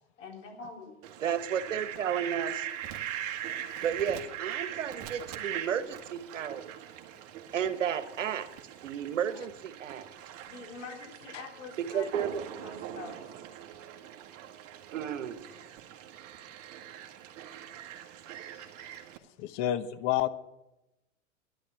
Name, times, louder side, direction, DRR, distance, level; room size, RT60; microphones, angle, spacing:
voice 1, 0.2-0.9 3.0-3.1 10.4-13.2 18.3-19.0, left 4 dB, 80° left, 1 dB, 3.9 m, -46 dB
Fowl, 1.0-19.2, right 11 dB, 40° right, 1.6 m, -41 dB
voice 2, 1.2-2.7 3.8-6.6 7.5-8.5 8.8-10.1 11.8-12.4 14.9-15.4, right 8 dB, 85° right, 11 dB, 1.2 m, -32 dB
voice 3, 19.4-20.3, left 12 dB, 45° left, 12 dB, 1.0 m, -29 dB
12.0 x 11.0 x 7.0 m, 0.94 s
hypercardioid pair, 120°, 37 cm